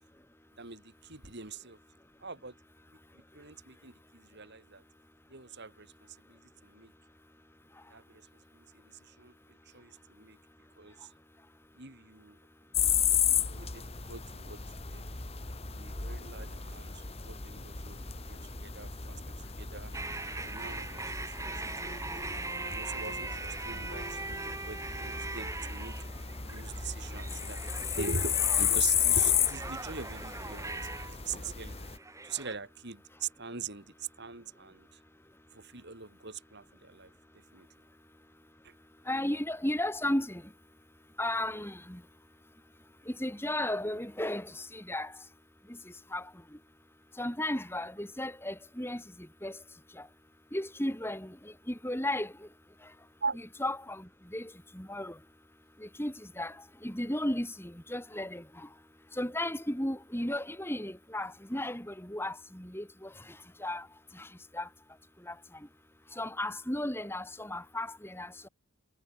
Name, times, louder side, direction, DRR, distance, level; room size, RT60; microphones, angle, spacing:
voice 1, 0.6-1.8 2.2-2.5 3.3-4.8 5.3-5.9 6.3-6.9 7.9-8.3 8.5-9.3 9.7-10.4 10.8-11.1 11.7-12.4 12.8-15.1 15.7-19.9 20.4-22.1 22.6-25.9 26.4-30.8 31.2-31.8 32.2-34.9 35.5-37.1 37.5-37.7 38.6-38.7 53.2-53.4, right 4 dB, 50° right, 3.3 m, -42 dB
sound 1, 12.7-32.0, left 8 dB, 25° left, 1.7 m, -33 dB
sound 2, 19.9-32.6, right 3 dB, 15° right, 5.9 m, -41 dB
voice 2, 39.1-40.4 41.2-42.0 43.1-45.1 46.1-46.3 47.2-49.0 49.4-49.6 50.0-50.1 50.5-52.3 53.6-55.2 55.8-58.7 59.1-63.1 63.6-63.9 64.1-64.3 64.5-64.7 65.3-65.4 66.2-68.5, left 1 dB, 10° left, 4.6 m, -34 dB
head